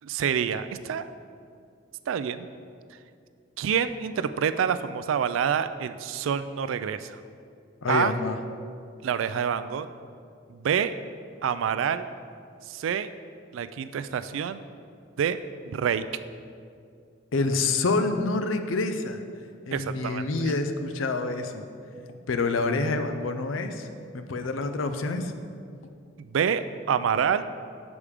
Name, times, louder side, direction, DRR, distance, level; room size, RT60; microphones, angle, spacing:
voice 1, 0.0-1.1 2.1-2.5 3.6-7.2 7.9-8.1 9.0-9.9 10.5-10.9 11.4-12.1 12.7-13.1 13.5-14.6 15.2-15.4 15.7-16.0 19.7-20.3 26.2-27.4, right 7 dB, 85° right, 12 dB, 0.3 m, -27 dB
voice 2, 7.8-8.4 17.3-19.2 19.7-21.6 22.3-23.9 24.1-25.3, left 3 dB, 85° left, 8 dB, 0.5 m, -27 dB
7.2 x 4.9 x 4.9 m, 2.3 s
head